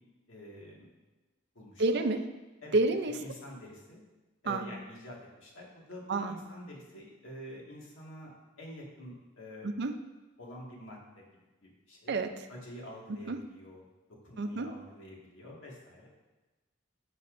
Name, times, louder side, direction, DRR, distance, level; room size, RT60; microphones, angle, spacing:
voice 1, 0.3-0.9 1.6-2.0 2.6-2.8 3.1-4.0 4.4-8.3 8.6-9.7 10.4-12.1 12.5-13.8 14.2-16.1, left 1 dB, 70° left, -3 dB, 1.9 m, -47 dB
voice 2, 1.8-2.3 2.7-3.2 4.5-4.7 6.1-6.4 9.6-10.0 12.1-12.5 13.1-13.4 14.4-14.7, right 2 dB, 60° right, 8 dB, 0.5 m, -29 dB
9.9 x 6.9 x 2.6 m, 1.2 s
head